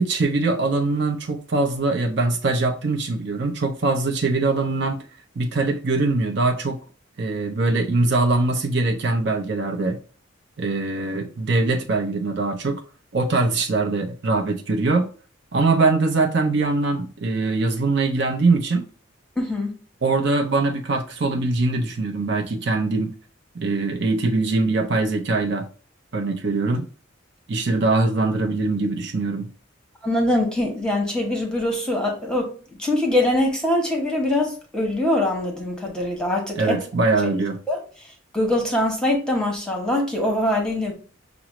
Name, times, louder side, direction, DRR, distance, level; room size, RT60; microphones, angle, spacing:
voice 1, 0.0-5.0 5.4-6.8 7.2-10.0 10.6-12.8 13.1-15.1 15.5-18.8 20.0-23.1 23.5-25.7 26.1-26.9 27.5-29.5 36.6-37.6, right 3 dB, 60° right, 0.6 m, -22 dB
voice 2, 19.4-19.7 30.0-36.8 37.2-37.3 37.7-37.8 38.3-40.9, left 1 dB, 5° left, 0.9 m, -23 dB
5.9 x 2.0 x 3.0 m
head